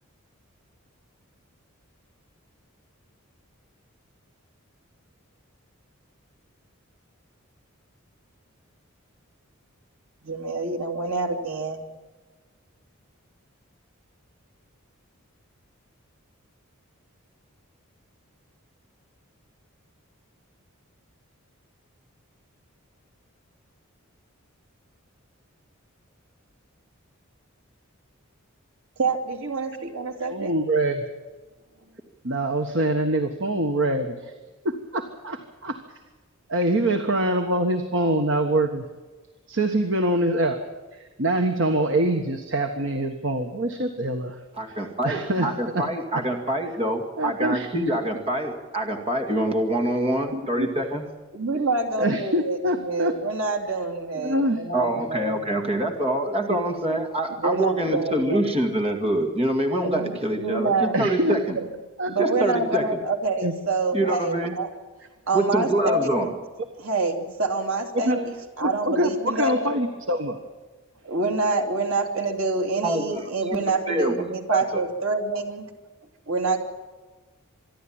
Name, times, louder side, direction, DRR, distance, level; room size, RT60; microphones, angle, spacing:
voice 1, 10.2-11.9 29.0-30.5 51.3-52.6 52.8-55.4 57.4-58.4 59.8-60.9 61.3-61.7 62.1-64.7 65.3-66.3 66.8-69.7 71.0-75.7 76.3-76.6, right 3 dB, 80° right, 4 dB, 2.8 m, -26 dB
voice 2, 30.3-31.0 32.2-34.3 34.6-35.8 36.5-38.8 39.5-40.7 40.9-44.4 44.7-44.8 45.0-45.5 45.7-45.8 47.2-47.7 50.3-50.7 52.0-53.1 54.1-54.6 56.5-56.6 60.9-61.4 62.0-62.1 63.4-63.5 68.1-68.2 68.6-70.4, right 1 dB, 60° right, 5 dB, 1.5 m, -24 dB
voice 3, 44.6-51.0 54.7-61.6 62.2-63.0 63.9-64.5 65.3-66.3 72.8-73.2 73.5-73.6 73.9-74.8, right 1 dB, 30° right, 4 dB, 2.2 m, -25 dB
25.5 x 11.5 x 8.9 m, 1.3 s
head